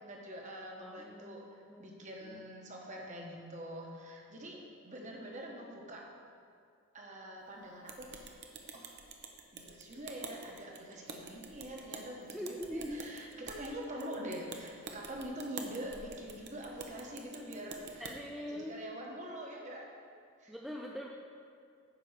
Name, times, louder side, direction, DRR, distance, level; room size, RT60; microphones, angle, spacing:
voice 1, 0.0-6.1 6.9-8.4 8.7-9.0 9.5-18.1 18.4-19.9 20.4-20.6, equal, 35° right, -1 dB, 1.2 m, -45 dB
voice 2, 0.8-2.5 12.3-13.0 13.3-13.4 18.0-18.8 20.5-21.1, equal, ahead, -2 dB, 0.4 m, -43 dB
sound 1, 7.9-18.1, right 4 dB, 50° right, 0.8 m, -48 dB
10.0 x 4.6 x 6.5 m, 2.3 s
head